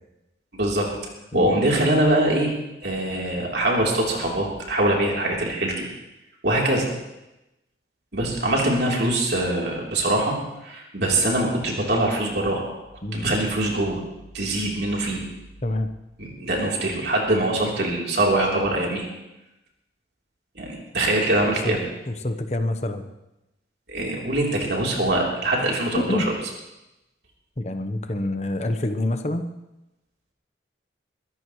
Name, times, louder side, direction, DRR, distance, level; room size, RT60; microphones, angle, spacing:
voice 1, 0.5-0.9 1.3-2.5 2.8-5.9 6.4-6.9 8.1-10.4 10.6-12.7 13.1-14.0 14.3-15.2 16.2-19.1 20.6-21.8 23.9-26.3, right 1 dB, 65° right, -2 dB, 3.5 m, -23 dB
voice 2, 22.1-23.0 25.9-26.3 27.6-29.5, left 1 dB, 35° left, 7 dB, 1.0 m, -26 dB
23.0 x 14.0 x 3.2 m, 0.94 s
head